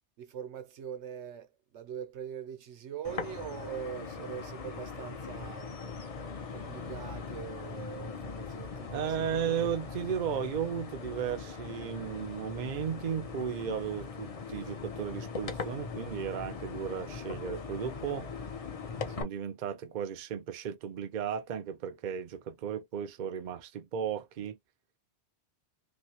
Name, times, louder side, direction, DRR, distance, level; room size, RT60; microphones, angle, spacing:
voice 1, 0.2-5.7 6.5-9.1 9.5-9.6, right 9 dB, 80° right, 1.1 m, -42 dB
sound 1, 3.0-19.2, left 5 dB, 40° left, 0.7 m, -40 dB
sound 2, 3.7-7.9, left 7 dB, 90° left, 1.1 m, -59 dB
voice 2, 8.9-18.3 19.2-24.6, right 8 dB, 50° right, 0.6 m, -35 dB
3.1 x 2.8 x 2.8 m
omnidirectional pair, 1.2 m